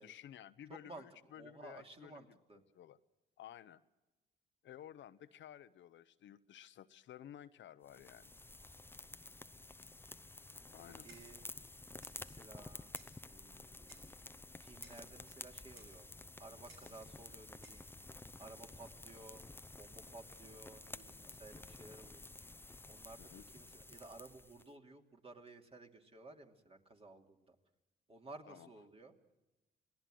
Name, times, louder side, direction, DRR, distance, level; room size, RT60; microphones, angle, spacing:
voice 1, 0.0-2.4 2.7-3.0 3.4-3.8 4.6-8.3 10.7-11.1 12.3-12.4 23.2-23.5 28.5-28.7, left 11 dB, 70° left, 12 dB, 0.9 m, -54 dB
voice 2, 0.7-1.1 1.4-2.6 11.0-11.4 12.2-12.9 13.2-14.1 14.6-16.1 16.4-17.9 18.4-19.4 19.8-22.3 22.9-23.2 23.5-27.5 28.1-29.1, right 2 dB, 30° right, 3 dB, 2.8 m, -55 dB
sound 1, 7.9-24.7, left 2 dB, 10° left, 0.7 m, -52 dB
Clock, 11.1-11.4 12.0-12.2 12.9-13.2 13.9-14.2 14.8-15.1 15.8-16.0 16.7-17.0 17.6-17.9, right 3 dB, 90° right, 7.1 m, -62 dB
26.5 x 19.0 x 7.8 m, 1.1 s
cardioid pair, 90°, 20 cm